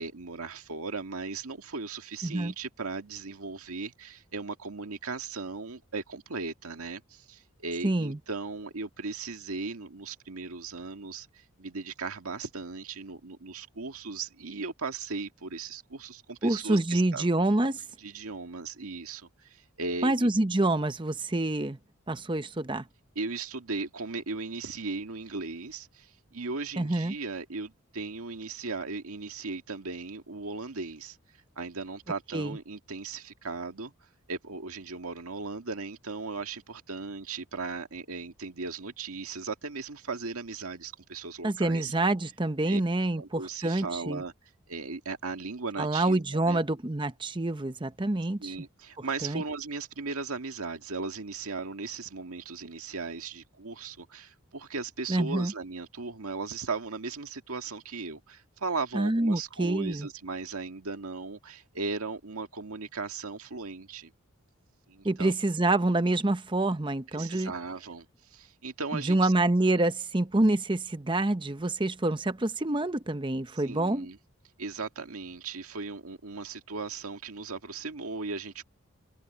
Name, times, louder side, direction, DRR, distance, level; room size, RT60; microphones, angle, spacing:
voice 1, 0.0-17.3 18.0-20.3 23.2-31.2 31.6-33.9 34.3-41.9 42.7-42.8 43.2-44.3 44.7-46.6 48.4-64.1 64.9-65.3 67.1-69.3 73.5-74.2 74.6-78.6, right 4 dB, 90° right, 1.9 m, -37 dB
voice 2, 2.2-2.5 7.8-8.2 16.4-17.8 20.0-21.8 22.1-22.8 26.8-27.1 32.3-32.6 41.4-44.2 45.8-48.5 49.0-49.4 55.1-55.5 58.9-60.1 65.0-67.5 68.9-74.1, right 2 dB, 20° right, 0.8 m, -27 dB
head